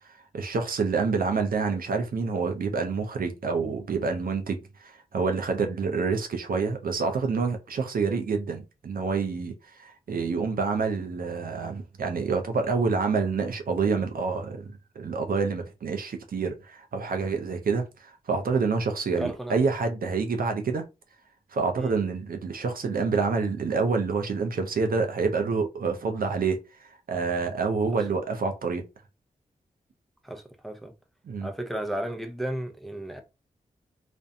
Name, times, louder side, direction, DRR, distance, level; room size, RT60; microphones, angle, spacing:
voice 1, 0.0-20.8 21.5-28.8 31.2-31.5, right 4 dB, 65° right, 0.6 m, -27 dB
voice 2, 19.2-19.6 21.8-21.9 30.2-30.9 31.4-33.2, right 1 dB, ahead, 0.6 m, -34 dB
2.5 x 2.1 x 2.7 m
cardioid pair, 40°, 16 cm